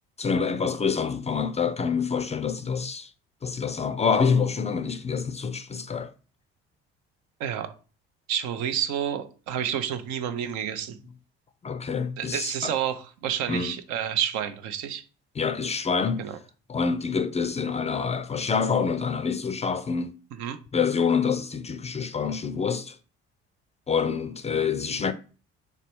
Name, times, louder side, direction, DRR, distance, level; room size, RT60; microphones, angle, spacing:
voice 1, 0.2-3.1 3.4-6.1 11.6-12.8 13.5-13.7 15.4-16.3 16.7-20.1 20.7-23.0 23.9-25.1, left 5 dB, 20° left, 0.4 m, -26 dB
voice 2, 7.4-7.7 8.3-11.0 12.2-15.0 16.2-16.4 20.3-20.6, right 9 dB, 70° right, 0.6 m, -29 dB
3.4 x 3.0 x 4.3 m
hypercardioid pair, 55°, 30 cm